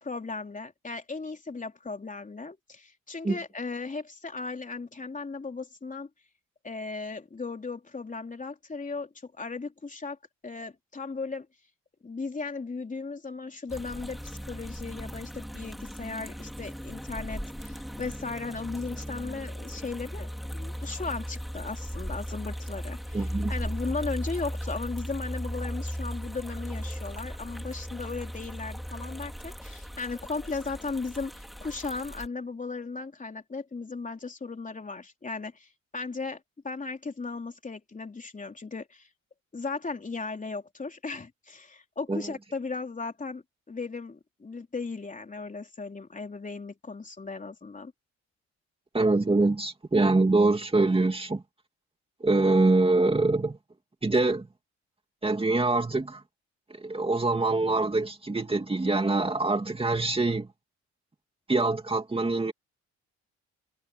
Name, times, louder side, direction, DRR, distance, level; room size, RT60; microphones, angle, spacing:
voice 1, 0.0-6.1 6.6-10.2 10.4-11.5 12.0-39.1 39.5-47.9, left 4 dB, 25° left, 3.7 m, -36 dB
sound 1, 13.7-32.3, equal, ahead, 4.8 m, -37 dB
voice 2, 23.1-23.5 42.1-42.2 48.9-51.4 52.2-53.6 54.0-54.5 55.2-56.2 56.8-60.5 61.5-62.5, right 2 dB, 20° right, 2.6 m, -24 dB
cardioid pair, 90°, 30 cm